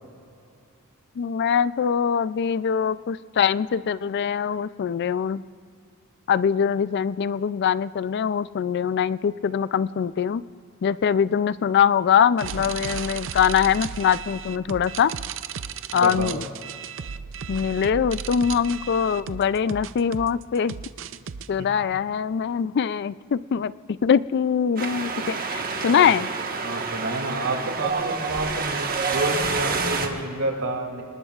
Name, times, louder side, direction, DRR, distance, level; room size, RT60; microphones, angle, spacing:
voice 1, 1.2-5.4 6.3-10.4 10.8-15.1 15.9-16.4 17.5-20.7 21.5-26.3, left 7 dB, 50° left, 17 dB, 0.3 m, -23 dB
sound 1, 12.4-21.5, right 7 dB, 60° right, 0.5 m, -35 dB
voice 2, 15.9-16.4 21.6-21.7 26.0-26.1 26.6-31.0, right 2 dB, 75° right, 2 dB, 2.6 m, -29 dB
Wind, 24.8-30.1, right 4 dB, 40° right, 1.4 m, -28 dB
27.0 x 19.5 x 2.4 m, 2.4 s
head